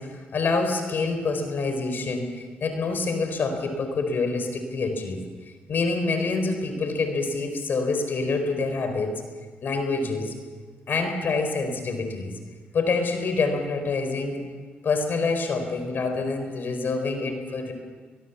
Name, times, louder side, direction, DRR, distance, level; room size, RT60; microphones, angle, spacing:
voice 1, 0.0-5.2 5.7-9.1 9.6-10.3 10.9-12.4 12.7-14.4 14.8-17.7, left 3 dB, 60° left, 6 dB, 4.4 m, -26 dB
23.0 x 21.0 x 7.1 m, 1.5 s
cardioid pair, 80°, 4 cm